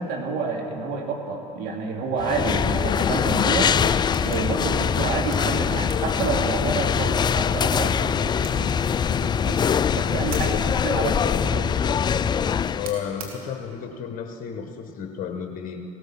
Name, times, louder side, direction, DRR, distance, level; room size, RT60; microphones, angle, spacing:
voice 1, 0.0-3.8 4.2-8.7 9.1-9.6 9.9-10.5 10.8-11.8, right 4 dB, 60° right, 1 dB, 2.7 m, -29 dB
sound 1, 2.2-12.9, left 7 dB, 25° left, 0.4 m, -23 dB
sound 2, 3.2-13.9, right 3 dB, 90° right, 2.3 m, -46 dB
voice 2, 10.3-10.8 12.8-15.8, left 8 dB, 50° left, 5 dB, 1.2 m, -32 dB
16.5 x 13.5 x 5.8 m, 2.7 s
hypercardioid pair, 75°, 18 cm